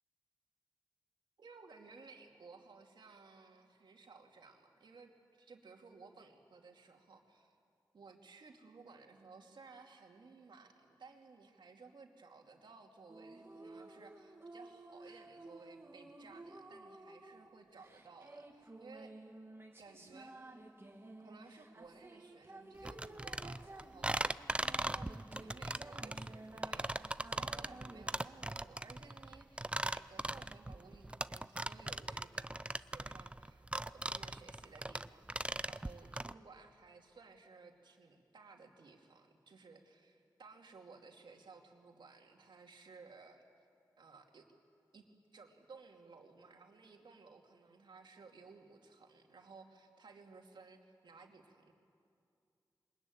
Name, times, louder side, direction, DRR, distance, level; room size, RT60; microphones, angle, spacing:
voice 1, 1.4-7.6 7.9-19.1 19.8-20.6 21.2-24.3 24.6-43.4 44.0-44.5 44.9-45.0 45.3-51.7, right 4 dB, 80° right, 2 dB, 2.6 m, -58 dB
sound 1, 13.1-28.0, right 2 dB, 30° right, 2.4 m, -54 dB
sound 2, 22.8-36.3, right 1 dB, 15° right, 0.5 m, -39 dB
24.0 x 20.5 x 9.4 m, 2.4 s
cardioid pair, 60°, 8 cm